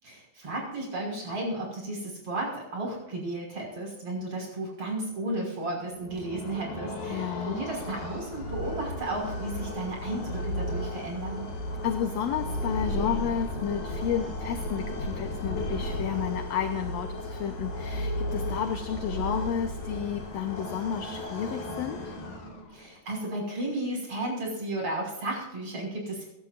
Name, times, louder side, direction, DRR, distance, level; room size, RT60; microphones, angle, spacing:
voice 1, 0.0-11.5 22.7-26.3, right 2 dB, 40° right, -2 dB, 6.6 m, -34 dB
sound 1, 5.9-22.9, left 1 dB, 80° left, 5.1 m, -34 dB
voice 2, 7.1-7.6 11.8-22.1, left 8 dB, 65° left, 6 dB, 1.9 m, -31 dB
25.0 x 11.5 x 2.6 m, 0.89 s
omnidirectional pair, 3.8 m